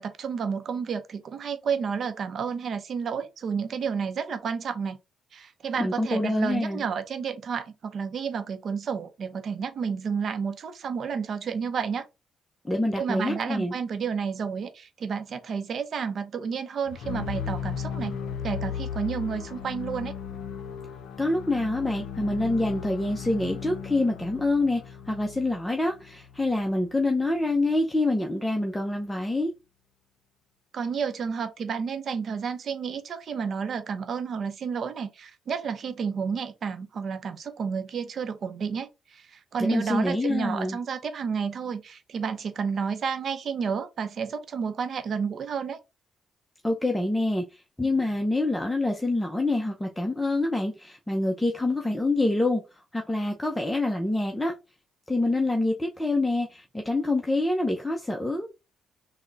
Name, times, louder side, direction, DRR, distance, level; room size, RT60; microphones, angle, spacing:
voice 1, 0.0-5.0 5.3-12.0 13.0-18.2 18.4-20.1 30.7-45.8, right 6 dB, 55° right, 0.6 m, -31 dB
voice 2, 5.8-6.8 12.6-13.7 21.2-29.5 39.6-40.8 46.6-54.5 55.1-58.5, left 2 dB, 10° left, 0.6 m, -26 dB
sound 1, 16.9-26.9, left 7 dB, 80° left, 0.5 m, -36 dB
3.6 x 2.1 x 3.8 m
cardioid pair, 90°, 0 cm